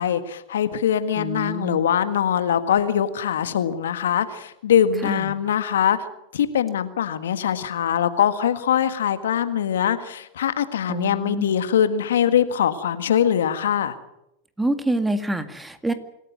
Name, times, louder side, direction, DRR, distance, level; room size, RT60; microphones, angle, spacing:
voice 1, 0.0-6.0 6.3-14.0, left 9 dB, 70° left, 11 dB, 1.7 m, -22 dB
voice 2, 1.2-1.8 5.0-5.3 10.9-11.5 14.6-15.9, right 2 dB, 5° right, 9 dB, 2.1 m, -27 dB
26.5 x 15.0 x 9.5 m, 0.85 s
hypercardioid pair, 95°, 0 cm